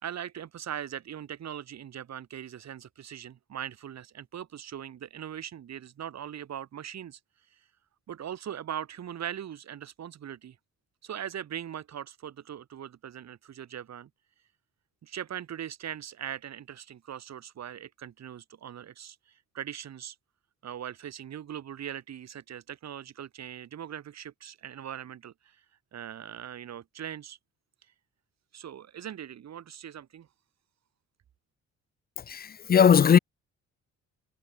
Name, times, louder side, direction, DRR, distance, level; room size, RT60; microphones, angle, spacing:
voice 1, 0.0-7.2 8.1-10.6 11.0-14.1 15.0-19.2 19.5-20.2 20.6-25.3 25.9-27.4 28.5-30.3, right 9 dB, 60° right, 3.5 m, -40 dB
voice 2, 32.3-33.2, left 7 dB, 30° left, 0.6 m, -19 dB
cardioid pair, 90°, 30 cm